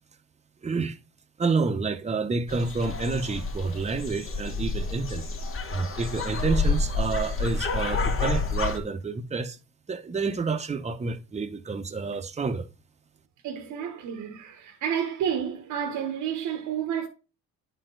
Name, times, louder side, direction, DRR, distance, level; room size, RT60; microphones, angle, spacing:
voice 1, 0.6-1.0 1.4-5.3 5.7-9.6 9.9-12.7, right 4 dB, 20° right, 0.8 m, -29 dB
sound 1, 2.5-8.8, left 3 dB, 45° left, 1.4 m, -29 dB
voice 2, 13.4-17.1, right 8 dB, 85° right, 1.2 m, -30 dB
9.7 x 4.4 x 3.9 m
cardioid pair, 90°, 30 cm